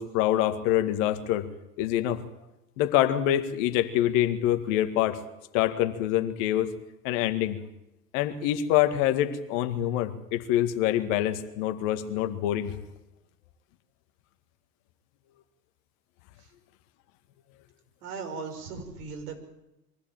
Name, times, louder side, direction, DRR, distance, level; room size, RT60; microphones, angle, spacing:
voice 1, 0.0-1.5 1.8-2.2 2.8-5.2 5.5-6.7 7.0-7.6 8.1-12.7, left 12 dB, 50° left, 8 dB, 2.1 m, -25 dB
voice 2, 18.0-19.4, right 5 dB, 65° right, 4 dB, 5.8 m, -38 dB
23.5 x 15.5 x 9.0 m, 0.92 s
hypercardioid pair, 100°, 48 cm